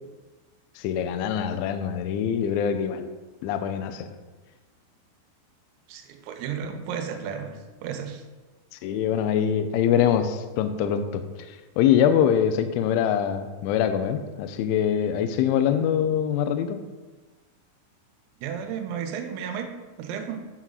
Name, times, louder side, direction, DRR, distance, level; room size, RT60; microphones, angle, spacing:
voice 1, 0.8-3.1 3.4-4.1 8.8-11.2 11.8-16.8, left 9 dB, 85° left, 8 dB, 2.7 m, -24 dB
voice 2, 5.9-8.2 18.4-19.7 20.0-20.4, right 7 dB, 85° right, 6 dB, 3.5 m, -33 dB
9.9 x 6.1 x 4.0 m, 1.2 s
omnidirectional pair, 6.0 m